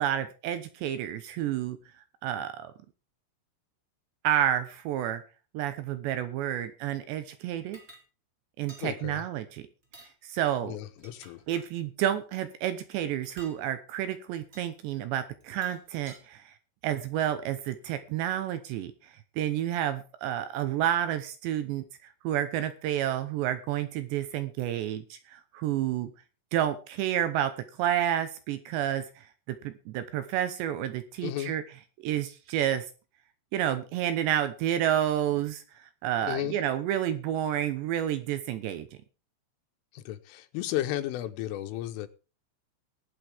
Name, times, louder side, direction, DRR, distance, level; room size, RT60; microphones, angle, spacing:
voice 1, 0.0-1.8 2.2-2.7 4.2-5.2 5.5-7.8 8.6-9.6 10.2-10.8 11.5-16.5 16.8-21.8 22.2-26.1 26.5-27.5 27.8-31.6 32.0-32.9 33.5-38.9, right 11 dB, 75° right, 11 dB, 2.9 m, -30 dB
sound 1, 7.7-8.0 8.7-8.9 9.8-10.1 10.8-11.7 13.3-13.6 14.5-14.7 15.4-16.2, right 2 dB, 55° right, 0.6 m, -52 dB
voice 2, 8.8-9.2 10.7-11.4 31.2-31.6 36.3-36.6 39.9-42.1, left 13 dB, 90° left, 8 dB, 3.6 m, -33 dB
21.0 x 8.2 x 3.5 m, 0.34 s
omnidirectional pair, 5.6 m